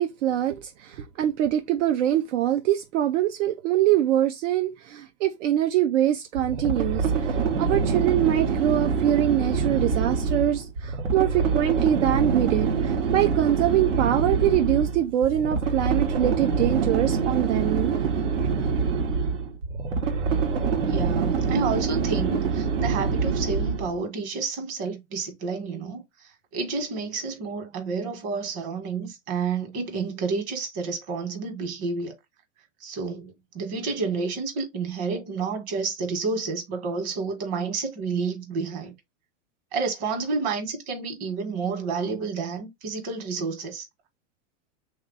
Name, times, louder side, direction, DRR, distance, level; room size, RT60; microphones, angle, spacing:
voice 1, 0.0-18.1, right 12 dB, 75° right, 0.7 m, -24 dB
lion mad, 6.3-24.0, right 5 dB, 90° right, 1.6 m, -25 dB
voice 2, 20.9-32.1 32.8-38.9 39.7-43.9, right 4 dB, 40° right, 1.5 m, -30 dB
3.4 x 2.9 x 3.9 m
supercardioid pair, 160°, 37 cm